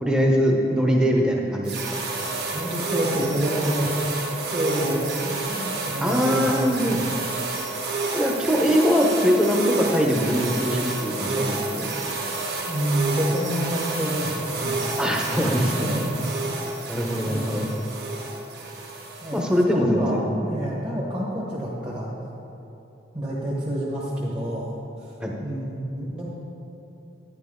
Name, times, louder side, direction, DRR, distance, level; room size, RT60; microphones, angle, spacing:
voice 1, 0.0-1.9 6.0-7.0 8.1-11.9 15.0-15.9 16.9-17.7 19.3-20.4 25.2-25.3, equal, 5° right, -1 dB, 0.9 m, -22 dB
sound 1, 1.6-19.6, right 3 dB, 60° right, 1.3 m, -30 dB
voice 2, 2.5-7.2 12.7-15.0 15.7-16.2 17.2-17.7 19.2-22.1 23.1-24.7 25.0-25.1 25.4-26.3, equal, 25° right, -6 dB, 1.3 m, -28 dB
10.5 x 9.9 x 3.8 m, 3.0 s
head